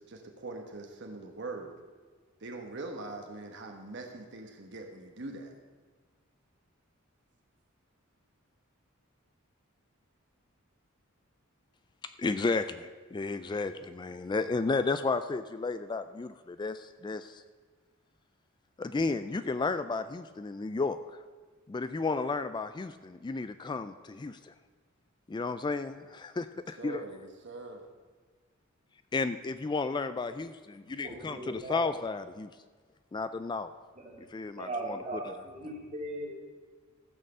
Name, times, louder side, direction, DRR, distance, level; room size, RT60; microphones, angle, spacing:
voice 1, 0.0-1.7 2.4-5.5 26.5-27.8, right 2 dB, 55° right, 3 dB, 1.2 m, -42 dB
voice 2, 12.0-17.4 18.8-21.0 21.7-24.5 25.3-27.0 29.1-32.5 33.1-33.7 34.3-35.3, left 3 dB, 20° left, 11 dB, 0.3 m, -33 dB
voice 3, 31.0-31.9 34.0-34.2 34.6-36.3, right 1 dB, 35° right, 0 dB, 2.5 m, -38 dB
14.5 x 6.6 x 6.7 m, 1.5 s
head